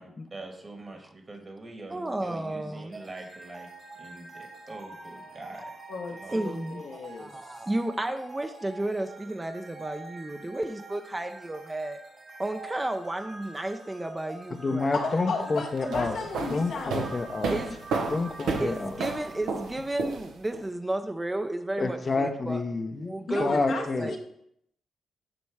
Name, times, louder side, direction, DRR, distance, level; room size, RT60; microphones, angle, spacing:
voice 1, 0.0-3.7 4.0-5.7 6.1-6.4, right 2 dB, 40° right, 3 dB, 1.6 m, -44 dB
voice 2, 1.9-3.1 6.3-6.8 7.2-12.0 12.4-15.3 17.5-17.8 18.6-22.6 23.0-24.2, right 1 dB, 20° right, 6 dB, 0.6 m, -32 dB
sound 1, 2.9-20.1, right 3 dB, 55° right, 1.7 m, -46 dB
voice 3, 5.9-7.3 14.9-17.1 23.3-24.2, left 4 dB, 70° left, 1 dB, 1.0 m, -34 dB
voice 4, 14.5-16.2 16.5-17.6 18.0-18.9 21.8-23.1 23.4-24.1, left 3 dB, 45° left, 6 dB, 0.7 m, -29 dB
sound 2, 15.8-20.6, right 4 dB, 75° right, 0.7 m, -32 dB
8.7 x 3.1 x 4.7 m, 0.74 s
hypercardioid pair, 40°, 0 cm